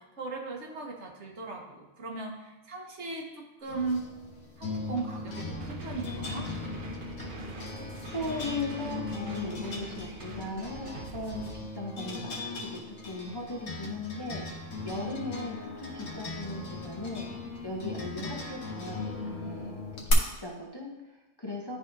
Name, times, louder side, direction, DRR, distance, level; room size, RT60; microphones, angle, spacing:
voice 1, 0.0-4.1 4.6-6.5, right 3 dB, 65° right, 1 dB, 1.3 m, -37 dB
sound 1, 3.7-20.1, left 3 dB, 80° left, 1.4 m, -38 dB
sound 2, 5.5-11.5, right 4 dB, 50° right, 0.8 m, -45 dB
voice 2, 7.8-14.6 14.8-17.3 17.6-21.8, left 2 dB, 25° left, -3 dB, 0.7 m, -38 dB
11.0 x 4.1 x 2.6 m, 1.1 s
omnidirectional pair, 1.3 m